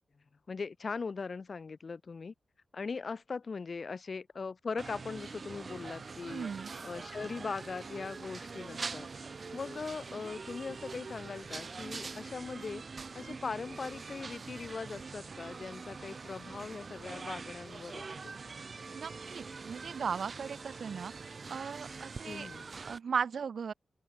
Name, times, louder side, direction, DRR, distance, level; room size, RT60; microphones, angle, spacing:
voice 1, 0.5-2.3 2.7-6.5 6.8-9.1 9.5-12.8 13.1-18.4 22.2-22.7, left 4 dB, 45° left, 2.2 m, -40 dB
sound 1, 4.8-23.0, right 4 dB, 45° right, 3.4 m, -44 dB
voice 2, 6.3-6.8 18.9-21.1 21.5-22.5 22.9-23.7, right 6 dB, 70° right, 0.8 m, -37 dB
open air
wide cardioid pair, 130°, 0 cm